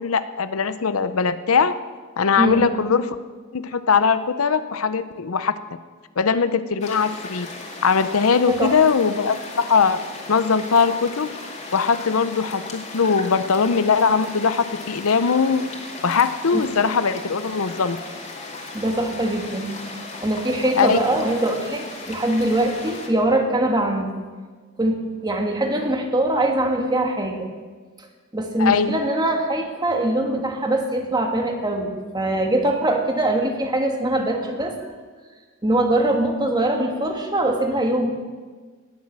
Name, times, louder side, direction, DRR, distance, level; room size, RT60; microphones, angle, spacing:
voice 1, 0.0-1.7 2.2-3.2 3.5-5.5 6.2-7.5 7.8-10.0 10.3-11.3 11.7-15.7 16.0-18.0 20.8-21.0 28.6-29.0, left 5 dB, 85° left, 12 dB, 0.7 m, -20 dB
voice 2, 2.4-2.7 8.5-8.8 16.5-16.7 18.7-19.8 20.2-24.1 24.8-27.5 28.3-34.8 35.6-38.1, right 1 dB, 20° right, 3 dB, 1.6 m, -22 dB
sound 1, 6.8-23.1, left 3 dB, 35° left, 2.4 m, -36 dB
19.0 x 7.4 x 7.5 m, 1.5 s
head